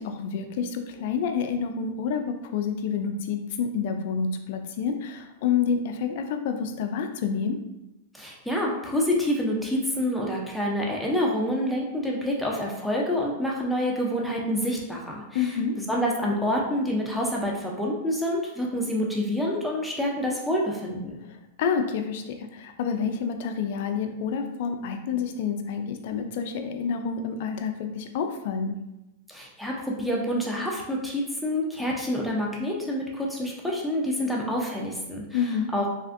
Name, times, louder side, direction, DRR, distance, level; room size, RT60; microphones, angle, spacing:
voice 1, 0.0-7.6 15.3-15.8 21.3-28.8 35.3-35.7, left 6 dB, 60° left, 6 dB, 0.4 m, -28 dB
voice 2, 8.1-15.6 15.9-21.1 29.3-35.4 35.7-35.9, equal, ahead, -3 dB, 0.5 m, -27 dB
3.4 x 2.5 x 2.5 m, 0.93 s
hypercardioid pair, 125°, 0 cm